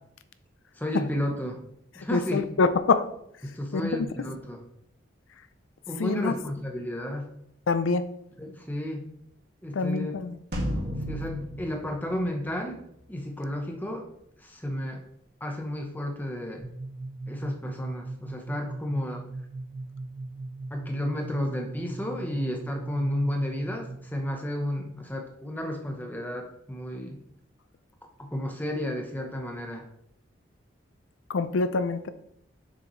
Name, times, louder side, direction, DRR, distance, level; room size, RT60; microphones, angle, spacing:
voice 1, 0.8-1.6 2.0-2.4 3.4-4.6 5.9-7.3 8.4-9.0 9.6-10.1 11.1-12.8 13.1-14.1 14.4-15.0 15.4-16.6 17.3-19.2 20.7-27.2 28.2-29.8, left 1 dB, 10° left, 2 dB, 0.9 m, -32 dB
voice 2, 2.1-3.1 3.7-4.1 6.0-6.4 7.7-8.1 9.7-10.4 31.3-32.1, left 4 dB, 85° left, 12 dB, 0.5 m, -25 dB
sound 1, 10.5-13.1, equal, 55° right, 1.9 m, -34 dB
sound 2, 16.6-24.2, right 2 dB, 30° left, 3.0 m, -39 dB
6.9 x 6.3 x 3.1 m, 0.73 s
head